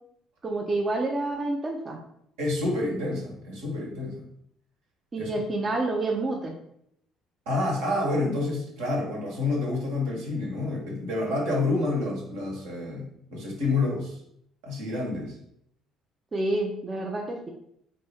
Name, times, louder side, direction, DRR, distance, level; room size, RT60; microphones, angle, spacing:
voice 1, 0.4-2.0 5.1-6.6 16.3-17.5, right 2 dB, 30° right, 1 dB, 0.6 m, -28 dB
voice 2, 2.4-4.2 5.2-5.3 7.5-14.2 14.6-15.4, left 2 dB, 70° right, -2 dB, 1.3 m, -28 dB
4.2 x 2.6 x 3.4 m, 0.72 s
hypercardioid pair, 55°, 0 cm